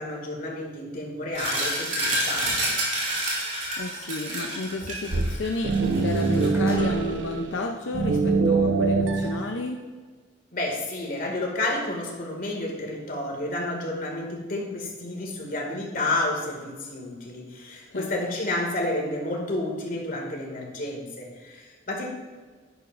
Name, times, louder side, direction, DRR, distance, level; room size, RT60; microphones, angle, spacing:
voice 1, 0.0-2.7 10.5-22.1, left 2 dB, 50° left, -1 dB, 2.2 m, -30 dB
sound 1, 1.3-6.5, right 1 dB, 45° right, 2.9 m, -29 dB
sound 2, 2.7-2.9 5.8-5.9 6.2-7.3 8.0-8.1 9.0-9.3, right 1 dB, 15° right, 3.0 m, -45 dB
voice 2, 3.8-9.9 17.9-18.1, left 2 dB, 85° left, 3 dB, 0.7 m, -32 dB
sound 3, 5.1-7.6 7.9-9.4, right 4 dB, 80° right, 0.9 m, -23 dB
11.0 x 10.0 x 2.6 m, 1.4 s
head